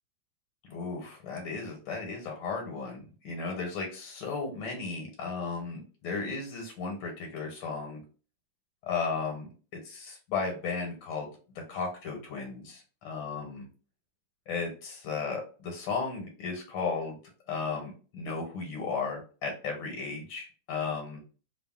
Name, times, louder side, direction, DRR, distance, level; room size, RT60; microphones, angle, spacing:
voice 1, 0.7-8.0 8.8-9.5 9.8-11.3 11.7-13.7 14.5-17.2 17.5-21.2, left 4 dB, 80° left, 2 dB, 1.5 m, -35 dB
3.4 x 2.0 x 2.2 m, 0.37 s
omnidirectional pair, 2.1 m